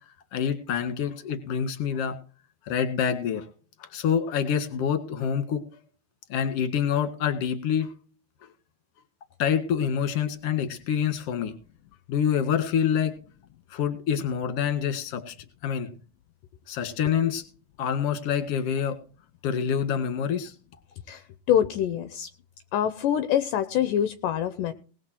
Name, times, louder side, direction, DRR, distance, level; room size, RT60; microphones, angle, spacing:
voice 1, 0.3-2.2 2.7-3.5 3.8-5.6 6.3-7.9 9.4-11.5 12.1-13.1 13.7-15.4 15.6-15.9 16.7-17.4 17.8-19.0 19.4-20.5, left 8 dB, 50° left, 8 dB, 2.2 m, -26 dB
voice 2, 21.1-22.3 22.7-24.7, left 10 dB, 75° left, 10 dB, 2.0 m, -25 dB
20.0 x 6.8 x 4.5 m, 0.39 s
omnidirectional pair, 4.6 m